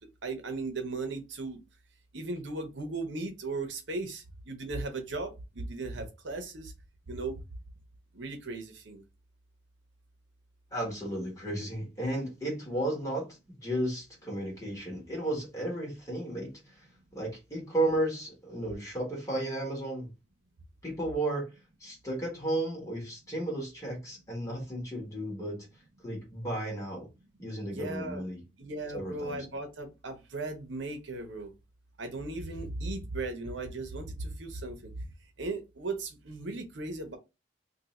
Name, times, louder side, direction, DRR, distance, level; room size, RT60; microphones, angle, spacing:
voice 1, 0.2-1.6 2.1-6.7 7.1-7.4 8.1-9.0 27.7-28.2 28.6-31.5 32.0-34.9 35.4-37.2, right 2 dB, 70° right, 0.8 m, -37 dB
voice 2, 10.7-13.3 13.6-16.8 17.1-20.1 20.8-21.5 21.8-25.7 26.0-27.1 27.4-28.4 28.9-29.4, right 1 dB, 15° left, 1.4 m, -33 dB
2.7 x 2.6 x 4.0 m
head